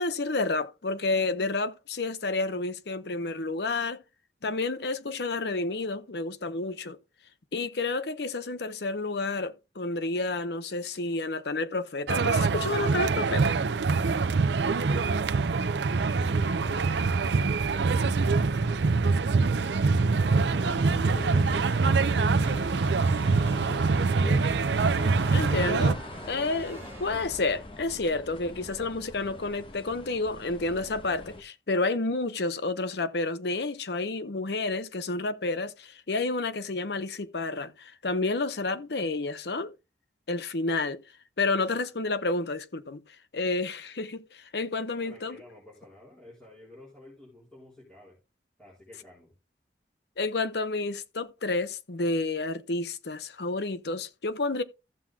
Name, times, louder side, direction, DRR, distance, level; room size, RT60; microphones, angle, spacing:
voice 1, 0.0-4.0 4.4-7.0 7.5-13.5 25.3-26.0 26.3-39.7 40.3-41.0 41.4-43.0 43.3-45.4 50.2-54.6, left 3 dB, 70° left, 0.8 m, -30 dB
sound 1, 12.1-25.9, right 4 dB, 80° right, 0.5 m, -24 dB
voice 2, 14.5-16.8 17.1-19.6 20.3-24.2 45.0-48.2 48.6-49.3, left 2 dB, 5° left, 4.1 m, -50 dB
sound 2, 16.6-28.0, equal, 15° right, 3.9 m, -43 dB
sound 3, 20.6-31.4, left 2 dB, 30° left, 1.0 m, -43 dB
14.5 x 7.4 x 2.3 m
head